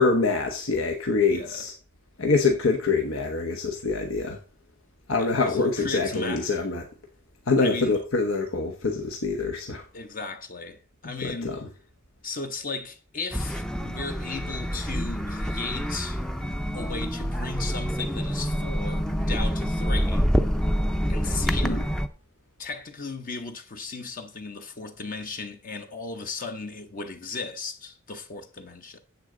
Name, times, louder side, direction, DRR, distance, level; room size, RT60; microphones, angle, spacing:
voice 1, 0.0-1.7 2.2-4.4 5.1-6.8 7.5-9.8 11.0-11.6 21.6-21.8, left 3 dB, 80° left, 1.2 m, -25 dB
voice 2, 1.3-1.6 5.2-6.6 7.6-8.0 9.9-11.6 12.2-16.2 16.7-20.3 21.1-21.8 22.6-29.0, left 4 dB, 40° left, 0.9 m, -36 dB
sound 1, 13.3-22.1, equal, 5° left, 0.6 m, -27 dB
9.9 x 7.9 x 3.8 m
head